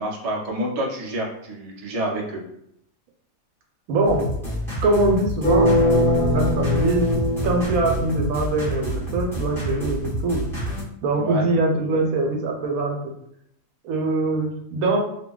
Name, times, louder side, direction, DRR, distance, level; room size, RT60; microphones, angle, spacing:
voice 1, 0.0-2.4 11.2-11.4, right 1 dB, 55° right, -2 dB, 0.4 m, -28 dB
voice 2, 3.9-4.3 4.8-7.1 7.4-10.5 11.0-13.0 13.8-15.0, right 2 dB, 80° right, 1 dB, 1.1 m, -23 dB
sound 1, 4.1-10.8, right 1 dB, 5° left, 0.5 m, -29 dB
sound 2, 5.4-8.5, left 1 dB, 45° left, 1.2 m, -21 dB
2.7 x 2.6 x 2.3 m, 0.74 s
omnidirectional pair, 1.5 m